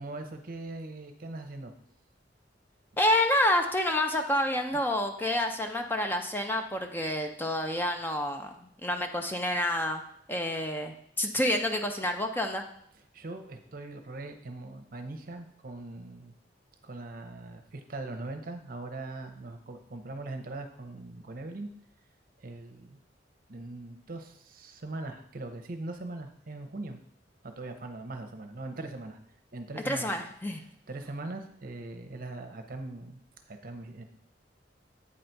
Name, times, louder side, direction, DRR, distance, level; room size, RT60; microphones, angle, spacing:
voice 1, 0.0-1.7 13.1-16.3 16.8-21.7 22.4-23.0 23.5-27.0 27.4-29.2 29.5-30.1 30.6-33.2 33.5-34.0, right 2 dB, 50° right, 6 dB, 0.8 m, -41 dB
voice 2, 3.0-8.5 8.8-10.0 10.3-12.6 29.9-30.6, left 1 dB, 10° left, 4 dB, 0.5 m, -28 dB
8.6 x 4.0 x 4.5 m, 0.71 s
head